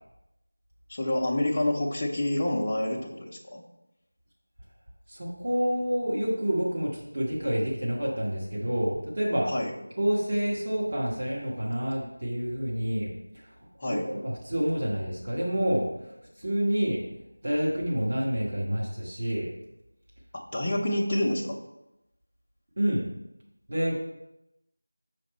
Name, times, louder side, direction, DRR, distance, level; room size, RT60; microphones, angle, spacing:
voice 1, 0.9-3.6 9.5-9.7 13.8-14.1 20.5-21.6, left 1 dB, 20° left, -4 dB, 0.7 m, -28 dB
voice 2, 5.1-9.5 10.0-17.0 17.4-19.5 20.6-20.7 22.8-23.1 23.7-24.0, equal, 40° right, -5 dB, 1.4 m, -28 dB
6.4 x 5.2 x 4.2 m, 0.90 s
figure-of-eight pair, 175°, 0 cm